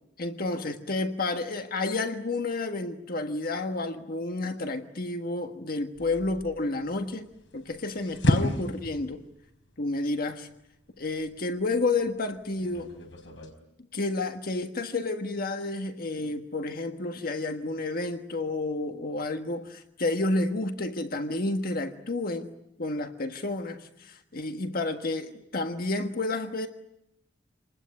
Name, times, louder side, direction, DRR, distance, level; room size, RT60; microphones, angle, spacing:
voice 1, 0.2-9.2 9.8-10.5 11.0-12.9 13.9-22.5 22.8-26.7, left 2 dB, 55° left, 6 dB, 1.5 m, -30 dB
sound 1, 6.0-13.5, equal, 80° left, 4.4 m, -33 dB
27.5 x 20.5 x 9.6 m, 0.84 s
head